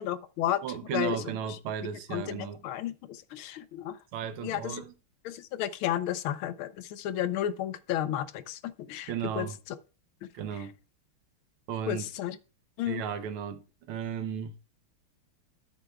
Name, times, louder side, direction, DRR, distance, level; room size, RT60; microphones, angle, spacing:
voice 1, 0.0-0.6 0.9-1.2 1.5-1.6 2.1-4.0 4.4-4.8 5.2-9.5 10.2-10.3 11.9-12.4 12.8-13.0, left 11 dB, 75° left, 1.4 m, -32 dB
voice 2, 0.6-2.6 4.1-4.9 9.1-9.6 10.3-10.7 11.7-12.0 12.9-14.6, right 8 dB, 80° right, 1.7 m, -35 dB
13.0 x 6.9 x 2.3 m
omnidirectional pair, 2.4 m